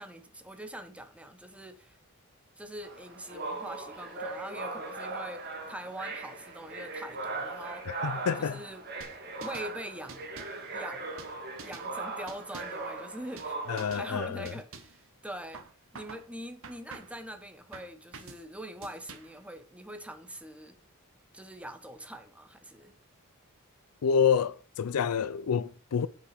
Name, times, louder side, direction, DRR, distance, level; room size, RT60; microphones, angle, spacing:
voice 1, 0.0-2.0 2.6-8.0 8.4-8.8 9.4-10.3 10.7-11.1 11.6-13.6 13.9-15.6 15.9-20.8 21.3-22.9, right 1 dB, 5° right, 1.0 m, -43 dB
sound 1, 2.8-14.3, right 3 dB, 50° right, 1.8 m, -39 dB
voice 2, 7.9-8.6 13.7-14.5 24.0-26.1, left 7 dB, 80° left, 0.4 m, -28 dB
sound 2, 9.0-9.7 10.1-10.6 11.2-11.9 12.3-12.9 13.4-13.5 13.8-14.1 14.5-15.0 15.5-16.3 16.6-17.2 17.7-18.4 18.8-19.4, right 4 dB, 65° right, 1.3 m, -47 dB
8.3 x 6.0 x 4.9 m
head